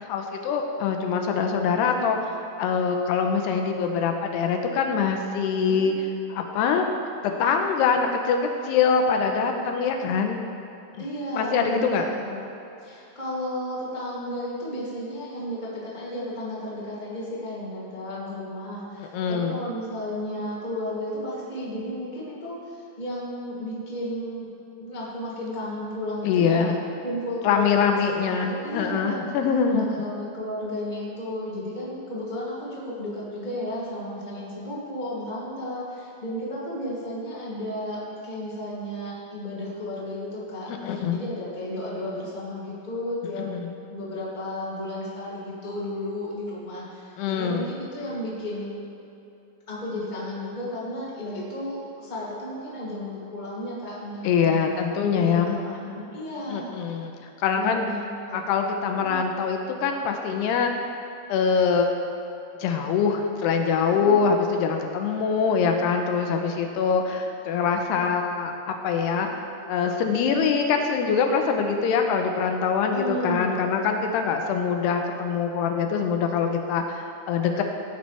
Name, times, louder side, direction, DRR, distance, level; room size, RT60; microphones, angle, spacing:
voice 1, 0.0-2.3 2.6-5.9 6.3-6.9 7.2-8.4 8.6-10.4 11.4-12.0 19.0-19.6 26.2-26.8 27.4-29.9 40.7-41.2 43.4-43.8 47.2-47.7 54.2-55.6 56.5-57.1 57.4-57.8 58.3-60.7 61.3-61.9 62.6-69.3 69.7-77.6, left 6 dB, 85° left, 4 dB, 2.9 m, -24 dB
voice 2, 11.0-11.9 12.2-12.4 12.8-24.5 24.8-26.7 27.0-29.2 29.7-43.5 43.9-48.8 49.7-56.8 57.5-58.4 59.0-59.2 63.9-64.2 72.9-73.7, left 1 dB, 15° left, -7 dB, 1.8 m, -33 dB
18.0 x 9.5 x 3.4 m, 2.7 s
omnidirectional pair, 4.7 m